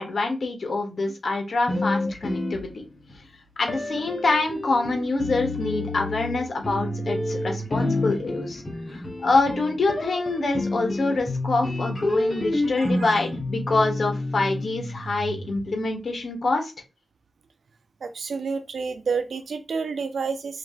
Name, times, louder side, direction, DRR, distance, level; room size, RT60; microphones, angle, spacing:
voice 1, 0.0-2.7 3.6-8.6 8.9-16.7, left 3 dB, 65° left, 1.8 m, -25 dB
sound 1, 1.7-3.1 3.7-15.9, left 2 dB, 40° left, 1.9 m, -29 dB
voice 2, 12.8-13.1 18.0-20.6, right 5 dB, 85° right, 0.6 m, -29 dB
4.9 x 3.4 x 3.2 m
cardioid pair, 65°, 0 cm